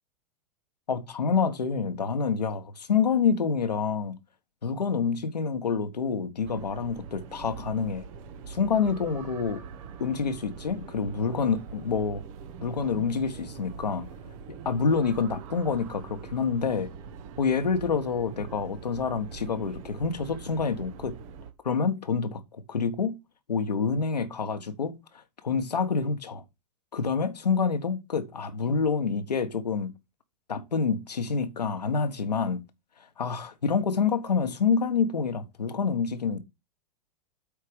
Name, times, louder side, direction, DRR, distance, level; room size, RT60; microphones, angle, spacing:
voice 1, 0.9-4.2 4.6-8.0 8.5-9.6 10.0-12.2 12.6-14.1 14.5-16.9 17.4-21.2 21.6-23.2 23.5-24.9 25.4-26.4 26.9-29.9 30.5-32.6 33.2-36.4, left 5 dB, 85° left, 1.5 m, -27 dB
sound 1, 6.4-21.5, right 6 dB, 55° right, 1.5 m, -43 dB
8.5 x 4.7 x 5.2 m
hypercardioid pair, 100°, 20 cm